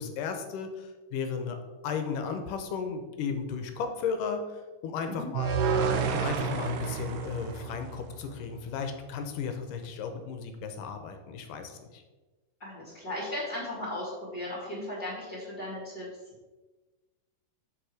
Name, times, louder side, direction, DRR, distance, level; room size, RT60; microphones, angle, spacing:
voice 1, 0.0-1.6 1.8-4.4 4.8-5.6 6.1-12.0, left 6 dB, 80° left, 7 dB, 2.5 m, -34 dB
sound 1, 5.3-8.5, right 6 dB, 70° right, 2.0 m, -30 dB
voice 2, 12.6-16.1, left 1 dB, 35° left, -7 dB, 2.5 m, -36 dB
8.1 x 6.6 x 4.8 m, 1.2 s
omnidirectional pair, 3.9 m